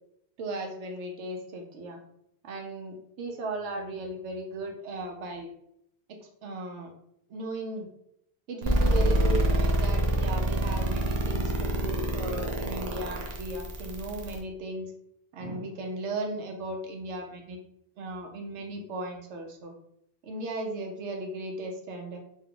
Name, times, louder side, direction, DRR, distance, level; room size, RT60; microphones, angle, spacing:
voice 1, 0.4-2.0 2.4-5.5 6.1-6.9 7.3-7.9 8.5-14.9 15.3-17.6 18.0-19.7 20.2-22.2, right 2 dB, 90° right, 2 dB, 1.0 m, -36 dB
sound 1, 8.6-14.4, right 1 dB, 50° right, 0.5 m, -26 dB
2.6 x 2.3 x 3.7 m, 0.75 s
omnidirectional pair, 1.1 m